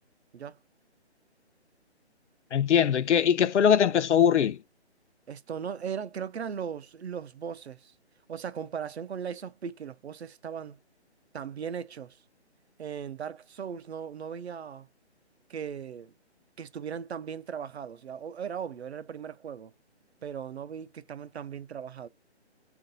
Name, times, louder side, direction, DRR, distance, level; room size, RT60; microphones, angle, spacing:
voice 1, 2.5-4.6, left 8 dB, 90° left, 0.6 m, -21 dB
voice 2, 5.3-7.9 8.3-10.8 11.3-12.2 12.8-14.9 15.5-16.1 16.6-19.7 20.2-22.1, right 7 dB, 70° right, 0.6 m, -38 dB
3.8 x 2.5 x 3.9 m
hypercardioid pair, 175°, 34 cm